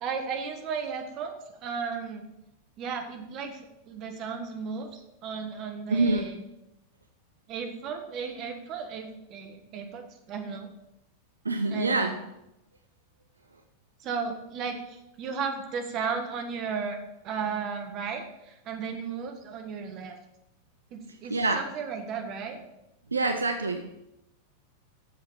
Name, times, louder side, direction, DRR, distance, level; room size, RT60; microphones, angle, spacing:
voice 1, 0.0-2.2 2.8-6.4 7.5-10.7 11.7-12.2 14.0-17.0 17.2-20.2 20.9-22.6, right 5 dB, 35° right, 5 dB, 1.4 m, -35 dB
voice 2, 5.9-6.3 11.4-12.1 21.3-21.7 23.1-23.9, right 3 dB, 75° right, 6 dB, 0.6 m, -26 dB
7.8 x 7.1 x 5.4 m, 0.88 s
figure-of-eight pair, 90°, 0 cm